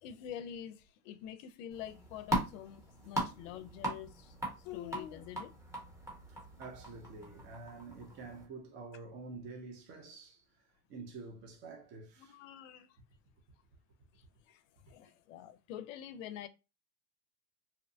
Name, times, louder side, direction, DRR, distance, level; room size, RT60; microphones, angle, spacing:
voice 1, 0.0-5.5 12.2-13.0 14.1-16.5, left 10 dB, 55° left, 0.5 m, -46 dB
sound 1, 1.7-8.4, right 1 dB, 5° right, 0.8 m, -40 dB
voice 2, 3.2-3.5 6.3-12.4, right 3 dB, 25° right, 0.4 m, -49 dB
2.8 x 2.1 x 2.6 m
supercardioid pair, 125°, 46 cm